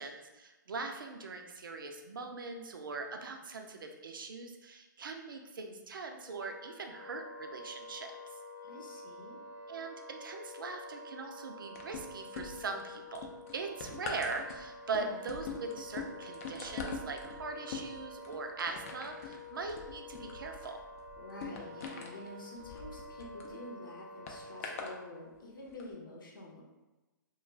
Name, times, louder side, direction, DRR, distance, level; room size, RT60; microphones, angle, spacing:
voice 1, 0.0-8.1 9.7-13.3 13.5-20.8, right 4 dB, 90° right, 4 dB, 0.5 m, -41 dB
Wind instrument woodwind instrument, 6.2-25.3, left 1 dB, 10° right, 0.5 m, -49 dB
voice 2, 8.7-9.4 15.0-15.3 21.2-26.6, left 2 dB, 85° left, -1 dB, 0.8 m, -48 dB
sound 1, 11.8-12.8 13.1-23.5 24.3-24.9 25.7-25.8, left 4 dB, 45° left, 0.4 m, -43 dB
2.3 x 2.3 x 3.2 m, 1.1 s
hypercardioid pair, 150°, 11 cm